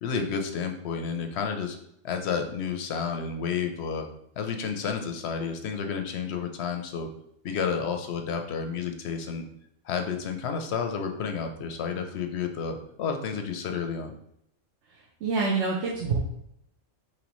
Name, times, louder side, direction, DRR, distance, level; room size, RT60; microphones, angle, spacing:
voice 1, 0.0-1.8 2.0-4.1 4.4-7.1 7.4-9.5 9.8-14.1, left 6 dB, 65° left, 5 dB, 0.8 m, -31 dB
voice 2, 14.9-16.2, right 4 dB, 65° right, -3 dB, 1.0 m, -27 dB
5.2 x 3.2 x 3.0 m, 0.75 s
omnidirectional pair, 1.3 m